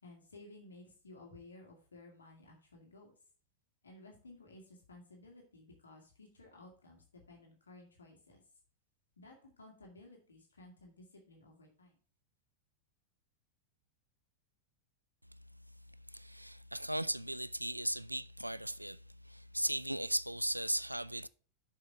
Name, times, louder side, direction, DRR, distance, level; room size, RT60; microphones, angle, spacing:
voice 1, 0.0-3.1 3.8-8.4 9.2-12.0, left 2 dB, 75° left, 2.0 m, -56 dB
voice 2, 16.1-19.0 19.3-21.3, right 1 dB, 90° right, 0.3 m, -37 dB
6.8 x 5.6 x 5.3 m
figure-of-eight pair, 90°, 0 cm